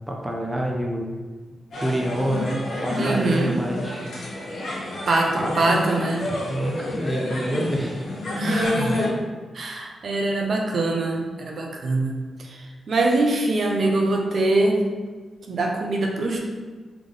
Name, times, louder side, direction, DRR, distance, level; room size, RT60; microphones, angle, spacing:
voice 1, 0.1-1.1 1.8-4.1 5.4-5.9 6.2-8.1, right 1 dB, 10° right, 0 dB, 0.5 m, -27 dB
sound 1, 1.7-9.1, left 1 dB, 70° left, 1.2 m, -29 dB
voice 2, 3.0-3.6 5.1-6.3 8.4-9.0 9.5-14.8 15.5-16.4, right 2 dB, 50° right, 1 dB, 0.6 m, -23 dB
3.8 x 3.6 x 3.3 m, 1.3 s
wide cardioid pair, 145°, 0 cm